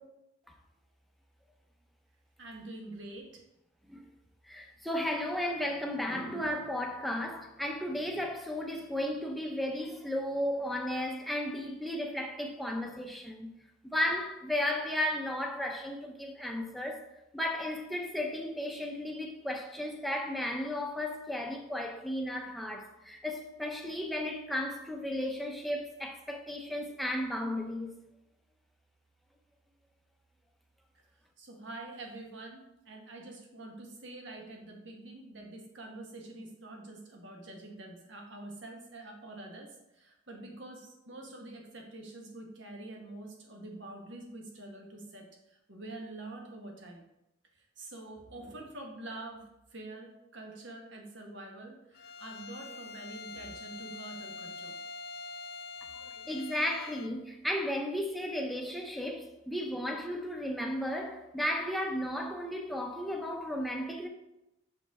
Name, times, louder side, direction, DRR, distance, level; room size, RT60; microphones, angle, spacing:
voice 1, 2.4-3.4 31.4-47.0 47.6-49.4 49.7-54.8, right 2 dB, 65° right, 1.3 m, -46 dB
voice 2, 4.5-13.5 13.8-17.0 17.3-27.9 56.3-64.1, left 1 dB, ahead, 0.6 m, -34 dB
Bowed string instrument, 51.9-57.2, left 4 dB, 50° left, 0.3 m, -45 dB
6.3 x 5.2 x 3.5 m
head